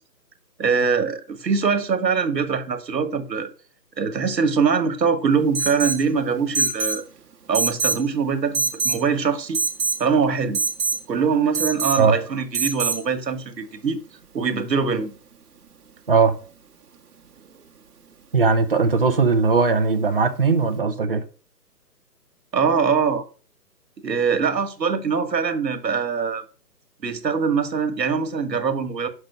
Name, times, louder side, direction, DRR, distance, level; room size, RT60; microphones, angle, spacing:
voice 1, 0.6-3.5 4.0-7.0 7.5-9.6 10.0-10.6 11.1-14.0 14.3-15.1 22.5-23.2 24.0-26.4 27.0-29.1, right 5 dB, 85° right, 1.5 m, -23 dB
Alarm, 5.5-6.0 6.5-7.0 7.5-8.0 8.5-9.0 9.5-10.0 10.5-11.0 11.5-12.0 12.5-13.0, right 4 dB, 65° right, 1.2 m, -24 dB
voice 2, 18.3-21.2, right 4 dB, 35° right, 0.7 m, -19 dB
6.1 x 5.3 x 5.3 m
hypercardioid pair, 170°, 50 cm